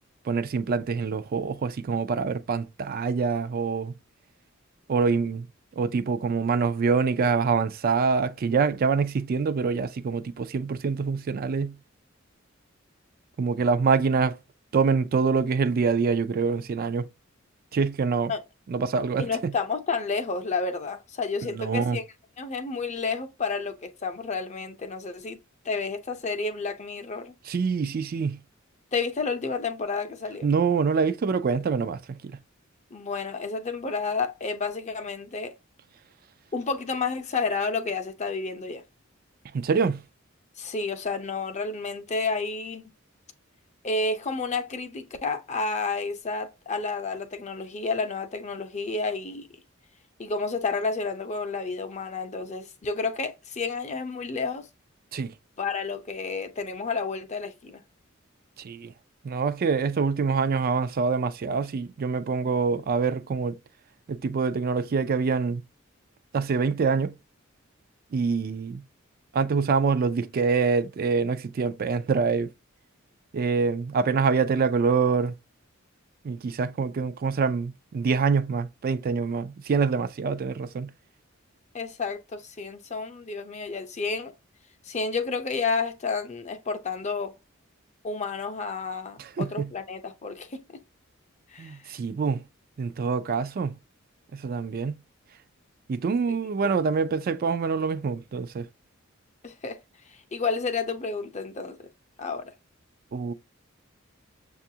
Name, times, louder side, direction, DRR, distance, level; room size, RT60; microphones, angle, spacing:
voice 1, 0.3-3.9 4.9-5.5 5.8-11.7 13.4-14.4 14.7-17.1 17.7-18.3 18.7-19.3 21.5-22.0 27.5-28.4 30.4-32.0 39.5-40.0 55.1-55.3 58.6-58.9 59.2-63.5 64.1-65.6 66.3-67.1 68.1-68.8 69.3-72.5 73.3-75.3 76.2-80.9 89.2-89.7 91.6-92.4 92.8-93.8 94.4-94.9 95.9-98.7 103.1-103.3, right 5 dB, 45° right, 0.4 m, -25 dB
voice 2, 19.2-22.0 22.4-25.4 25.6-27.3 28.9-30.5 32.9-35.5 36.5-38.8 40.6-42.8 43.8-49.5 50.2-54.7 55.6-57.8 81.7-84.3 84.9-87.3 88.0-90.6 91.5-91.8 96.6-96.7 99.4-99.8 100.3-101.8 102.2-102.5, left 4 dB, 35° left, 0.6 m, -30 dB
6.7 x 2.4 x 2.7 m
head